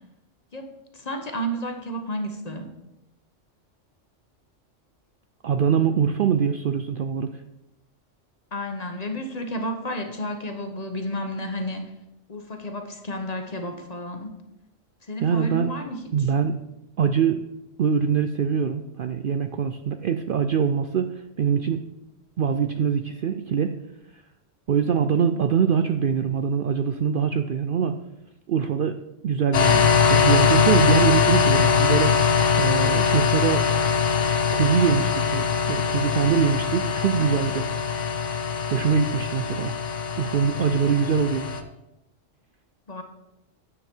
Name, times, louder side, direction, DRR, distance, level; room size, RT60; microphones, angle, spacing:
voice 1, 0.5-2.7 8.5-11.9 12.3-14.3 15.1-16.3 42.9-43.0, equal, 35° left, 5 dB, 1.0 m, -32 dB
voice 2, 5.4-7.4 15.2-15.7 16.1-16.6 17.0-17.5 17.8-21.8 22.4-23.7 24.7-28.0 28.5-29.0 29.2-33.7 34.5-37.7 38.7-39.7 40.2-41.5, right 7 dB, 60° right, 8 dB, 0.6 m, -23 dB
sound 1, 29.5-41.6, left 6 dB, 80° left, 1.2 m, -22 dB
9.9 x 7.5 x 4.5 m, 0.92 s
omnidirectional pair, 1.3 m